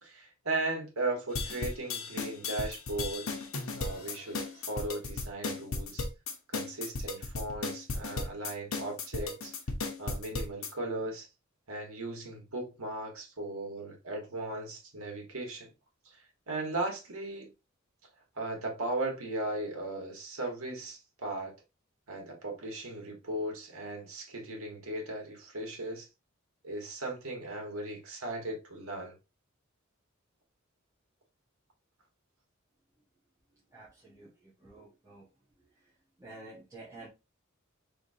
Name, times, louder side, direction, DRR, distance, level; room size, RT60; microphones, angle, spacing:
voice 1, 0.0-3.3 3.8-6.1 6.5-9.6 10.0-11.3 11.7-15.7 16.1-17.5 18.4-21.5 22.1-26.1 26.6-29.2, right 2 dB, 80° right, 1.6 m, -37 dB
sound 1, 1.3-10.7, left 3 dB, 70° left, 1.0 m, -35 dB
voice 2, 33.7-34.3 34.6-35.2 36.2-37.1, right 2 dB, 15° right, 1.4 m, -49 dB
4.9 x 3.4 x 2.8 m
head